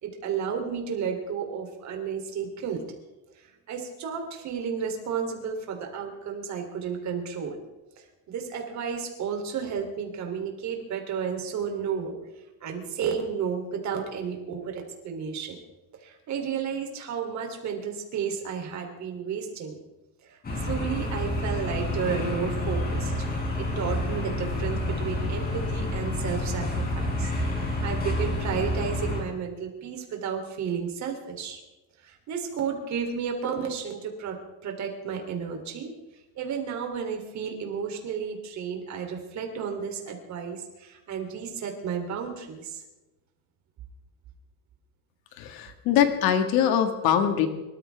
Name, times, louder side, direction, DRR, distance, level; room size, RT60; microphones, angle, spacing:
voice 1, 0.0-2.8 3.4-7.6 8.0-12.2 12.6-15.6 15.9-19.8 20.2-23.1 23.6-27.3 27.6-31.6 32.0-35.9 36.3-42.8, right 6 dB, 50° right, 3 dB, 3.2 m, -32 dB
sound 1, 20.4-29.2, left 1 dB, 25° left, 4.7 m, -29 dB
voice 2, 45.4-47.5, left 9 dB, 85° left, 7 dB, 1.9 m, -23 dB
25.5 x 14.0 x 3.5 m, 1.1 s
cardioid pair, 160°, 35 cm